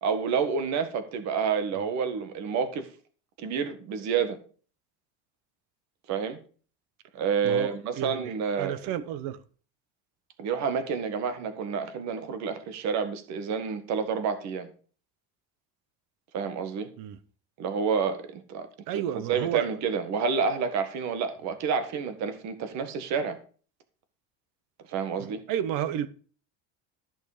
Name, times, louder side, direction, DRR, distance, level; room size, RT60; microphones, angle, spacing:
voice 1, 0.0-2.9 3.4-4.4 6.1-6.4 7.1-8.7 10.4-14.7 16.3-16.9 17.6-18.7 18.9-19.0 19.3-23.4 24.9-25.4, right 6 dB, 45° right, 1.7 m, -29 dB
voice 2, 7.4-9.4 17.0-17.2 18.9-19.7 25.1-26.1, right 10 dB, 65° right, 1.2 m, -32 dB
14.0 x 6.3 x 5.0 m
cardioid pair, 180°, 37 cm